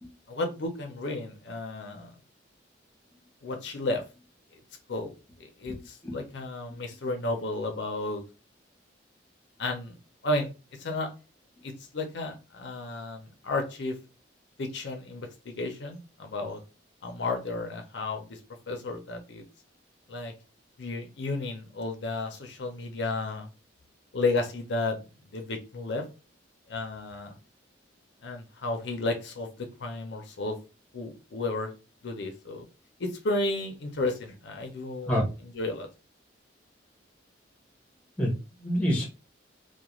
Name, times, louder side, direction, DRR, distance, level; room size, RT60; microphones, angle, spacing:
voice 1, 0.3-2.2 3.4-4.0 4.9-5.1 5.4-8.2 9.6-10.0 10.2-11.1 11.6-14.0 14.6-16.6 17.0-18.4 18.7-19.4 20.1-20.3 20.8-23.5 24.1-25.0 25.3-26.0 26.7-27.4 28.2-30.6 30.9-31.7 32.0-32.7 33.0-35.2 35.5-35.9, left 2 dB, 70° left, 4 dB, 0.5 m, -32 dB
voice 2, 5.7-6.2 35.1-35.2 38.2-39.1, equal, 5° left, -1 dB, 0.8 m, -28 dB
2.3 x 2.1 x 2.9 m, 0.30 s
head